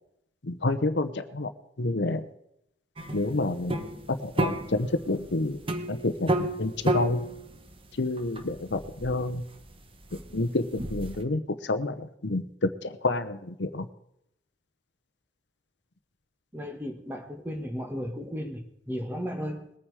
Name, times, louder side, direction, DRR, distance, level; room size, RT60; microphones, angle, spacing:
voice 1, 0.4-1.5 1.8-2.3 3.1-5.6 5.9-7.2 7.9-9.4 10.3-13.9, left 2 dB, 70° left, 9 dB, 0.9 m, -29 dB
sound 1, 3.0-11.2, right 1 dB, 30° right, 1.3 m, -32 dB
voice 2, 16.5-19.7, equal, 10° right, 5 dB, 1.6 m, -35 dB
21.0 x 9.0 x 4.8 m, 0.79 s
head